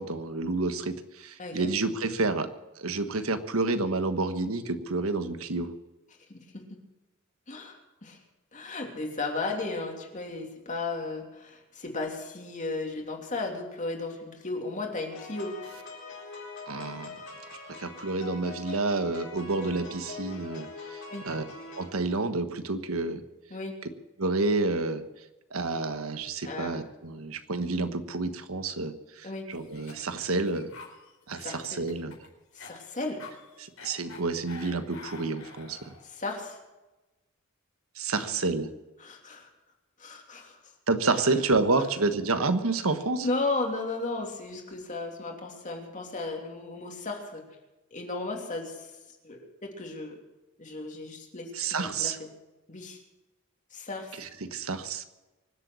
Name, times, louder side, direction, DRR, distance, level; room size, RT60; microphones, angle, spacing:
voice 1, 0.0-2.5 2.8-5.7 16.7-17.2 17.7-21.4 21.8-23.2 24.2-25.0 25.5-30.7 31.3-32.1 33.6-35.9 38.0-38.7 40.9-43.3 51.5-52.2 54.2-55.1, right 3 dB, 90° right, 9 dB, 1.3 m, -29 dB
voice 2, 6.3-6.6 7.5-8.2 8.5-15.6 21.1-21.3 23.5-23.7 26.4-26.7 29.2-29.5 31.3-31.8 32.5-33.2 36.0-36.6 38.1-38.2 39.0-39.5 40.0-40.6 43.2-47.4 47.9-48.9 49.2-50.1 50.6-52.3 52.7-53.0 53.7-54.2, left 3 dB, 35° left, 2 dB, 3.0 m, -35 dB
sound 1, 15.1-21.9, left 3 dB, 60° left, 4.8 m, -43 dB
Cough, 29.5-36.1, left 4 dB, 75° left, 4.7 m, -48 dB
24.5 x 8.2 x 6.3 m, 1.1 s
head